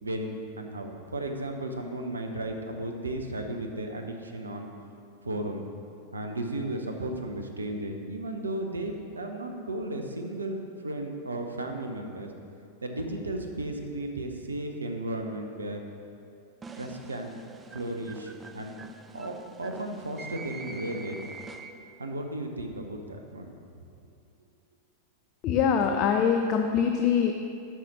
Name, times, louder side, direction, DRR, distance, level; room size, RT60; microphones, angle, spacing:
voice 1, 0.0-4.7 5.2-5.7 6.1-12.3 12.8-15.8 16.8-17.3 17.7-18.8 19.1-21.2 22.0-23.6, right 1 dB, 75° right, 4 dB, 0.8 m, -34 dB
sound 1, 16.6-22.0, right 3 dB, 15° right, 0.4 m, -45 dB
voice 2, 25.4-27.3, left 7 dB, 40° left, 5 dB, 0.5 m, -23 dB
7.0 x 5.8 x 6.0 m, 2.5 s
figure-of-eight pair, 90°, 0 cm